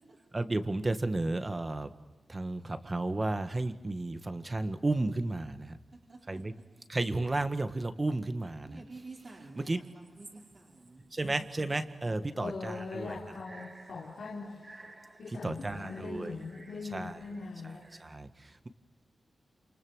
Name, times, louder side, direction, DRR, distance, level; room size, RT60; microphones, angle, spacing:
voice 1, 0.3-1.9 2.3-5.8 6.3-6.5 6.9-8.8 9.5-9.8 11.1-13.2 13.5-13.8 14.7-16.3 16.9-17.2 17.9-18.3, right 2 dB, 25° right, 1.8 m, -33 dB
voice 2, 8.6-11.1, right 3 dB, 40° right, 4.2 m, -50 dB
voice 3, 12.3-14.9 15.2-18.0, left 4 dB, 65° left, 3.9 m, -41 dB
29.0 x 28.0 x 6.5 m
wide cardioid pair, 110°, 0 cm